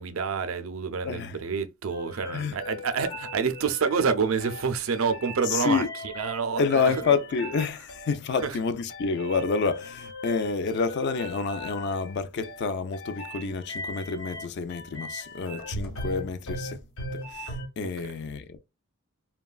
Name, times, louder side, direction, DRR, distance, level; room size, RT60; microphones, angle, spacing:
voice 1, 0.0-5.9 6.2-7.1 8.4-8.6 18.0-18.1, right 5 dB, 65° right, 0.4 m, -28 dB
sound 1, 1.9-17.7, left 1 dB, 80° left, 1.2 m, -39 dB
voice 2, 5.5-5.9 6.5-16.8 17.3-18.6, left 5 dB, 50° left, 0.3 m, -28 dB
3.0 x 2.2 x 2.3 m
head